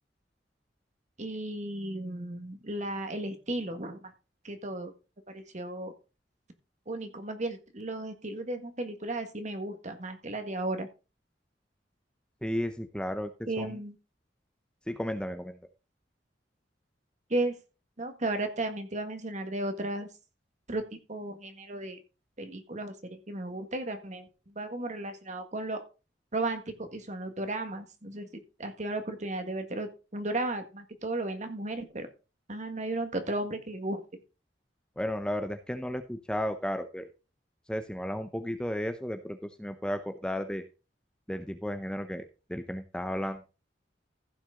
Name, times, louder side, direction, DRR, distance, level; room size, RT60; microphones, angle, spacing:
voice 1, 1.2-4.1 4.4-4.9 5.3-5.9 6.9-10.9 13.5-14.0 17.3-17.5 18.0-20.1 20.7-20.8 21.1-22.0 22.4-25.8 26.3-32.1 32.5-34.0, right 2 dB, 40° right, 7 dB, 1.7 m, -34 dB
voice 2, 12.4-13.3 13.6-13.7 14.9-15.5 35.0-37.1 37.7-40.6 41.3-43.4, equal, 5° left, 8 dB, 0.7 m, -33 dB
15.0 x 6.1 x 3.7 m, 0.31 s
head